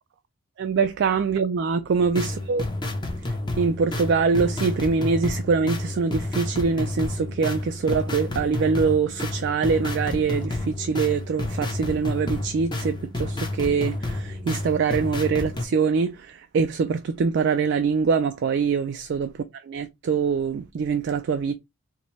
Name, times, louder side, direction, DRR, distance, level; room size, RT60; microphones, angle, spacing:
voice 1, 0.6-2.6 3.6-21.5, right 5 dB, 55° right, 0.3 m, -24 dB
sound 1, 2.0-15.7, left 2 dB, 20° left, 0.7 m, -30 dB
4.0 x 2.2 x 3.0 m
head